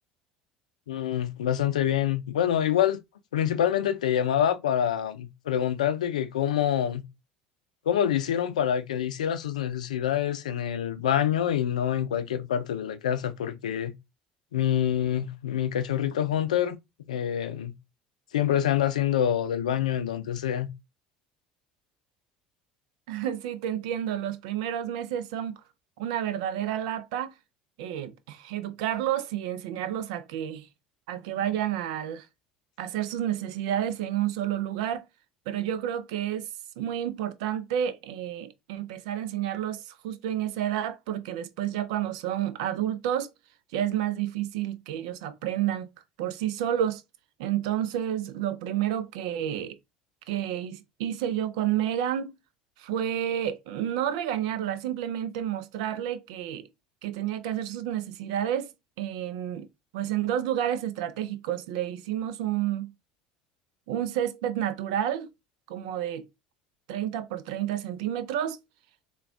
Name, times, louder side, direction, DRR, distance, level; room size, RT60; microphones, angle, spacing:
voice 1, 0.9-3.0 3.3-7.0 7.9-13.9 14.5-16.8 17.1-17.7 18.3-20.7, left 10 dB, 90° left, 0.4 m, -26 dB
voice 2, 23.1-25.5 26.0-27.3 27.8-30.7 31.1-32.3 32.8-35.0 35.5-36.5 36.8-43.3 43.7-45.9 46.2-47.0 47.4-49.8 50.3-52.4 52.8-56.7 57.0-58.7 59.0-59.7 59.9-62.9 63.9-65.3 65.7-66.3 66.9-68.6, right 11 dB, 75° right, 0.5 m, -30 dB
3.5 x 2.3 x 3.4 m
hypercardioid pair, 70°, 4 cm